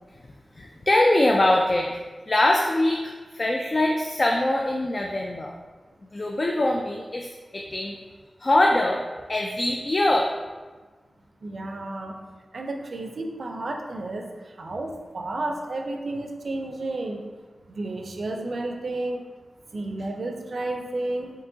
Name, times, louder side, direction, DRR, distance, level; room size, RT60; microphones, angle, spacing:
voice 1, 0.6-1.9 2.3-5.5 6.1-8.0 8.4-9.0 9.3-10.3, left 1 dB, 45° left, 0 dB, 0.3 m, -23 dB
voice 2, 11.4-12.2 12.5-14.3 14.6-17.2 17.7-19.2 19.7-21.3, right 2 dB, 70° right, 3 dB, 0.4 m, -31 dB
4.5 x 2.8 x 2.7 m, 1.3 s
wide cardioid pair, 65°, 0 cm